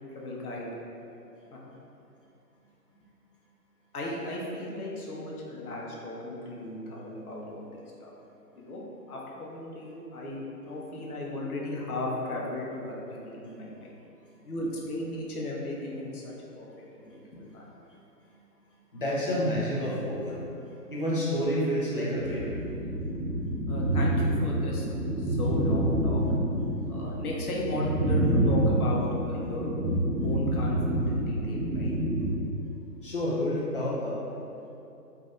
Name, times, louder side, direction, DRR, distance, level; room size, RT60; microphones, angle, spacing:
voice 1, 0.1-0.7 1.5-1.6 3.9-8.1 8.5-8.8 9.1-10.4 10.7-13.9 14.4-16.7 16.9-17.6 23.7-24.9 25.2-26.2 26.9-29.7 30.2-31.9, left 1 dB, 65° left, -3 dB, 0.8 m, -36 dB
voice 2, 18.9-22.5 33.0-34.2, equal, 35° left, -6 dB, 0.4 m, -29 dB
sound 1, 22.2-32.3, right 1 dB, 75° right, 0.9 m, -27 dB
3.2 x 2.5 x 2.5 m, 2.8 s
hypercardioid pair, 150°, 48 cm